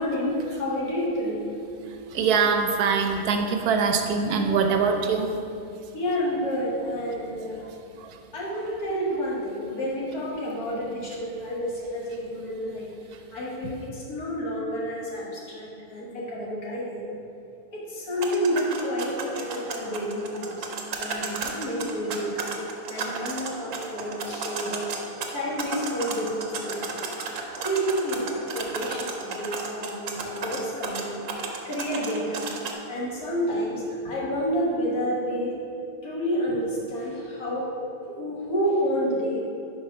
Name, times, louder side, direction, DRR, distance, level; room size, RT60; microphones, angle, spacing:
voice 1, 0.0-1.5 5.9-7.6 8.3-12.9 13.3-17.1 17.7-20.7 21.0-22.5 22.9-24.9 25.3-26.9 27.6-28.2 28.5-31.2 31.7-32.5 32.9-35.5 36.0-37.8 38.2-39.4, equal, 75° left, -5 dB, 1.8 m, -29 dB
voice 2, 2.1-5.3, right 5 dB, 85° right, 5 dB, 1.1 m, -23 dB
sound 1, 18.2-32.7, right 4 dB, 65° right, 1.0 m, -34 dB
5.0 x 4.8 x 5.2 m, 2.7 s
omnidirectional pair, 1.6 m